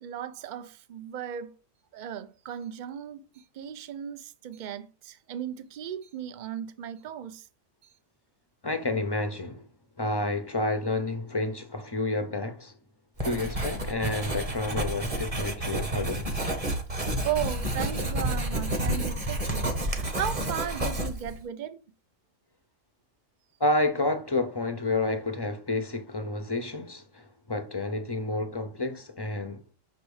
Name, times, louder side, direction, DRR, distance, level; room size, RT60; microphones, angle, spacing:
voice 1, 0.0-1.5 1.9-3.2 3.5-7.4 17.2-21.8, right 10 dB, 45° right, 0.7 m, -36 dB
voice 2, 8.6-9.7 10.0-12.7 13.2-16.3 23.6-29.7, left 2 dB, 30° left, 0.5 m, -30 dB
Writing, 13.2-21.4, right 1 dB, 30° right, 1.3 m, -30 dB
6.2 x 4.9 x 4.8 m
omnidirectional pair, 1.3 m